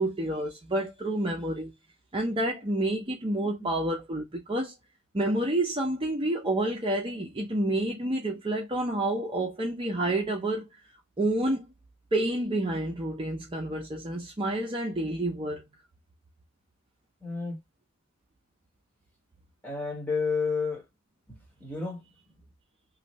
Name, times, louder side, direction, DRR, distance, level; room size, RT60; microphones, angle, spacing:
voice 1, 0.0-1.7 2.1-4.7 5.1-10.6 11.2-11.6 12.1-15.6, right 1 dB, 25° right, 0.5 m, -29 dB
voice 2, 17.2-17.6 19.6-20.9 21.6-22.1, left 4 dB, 5° left, 1.0 m, -30 dB
2.6 x 2.5 x 3.0 m
head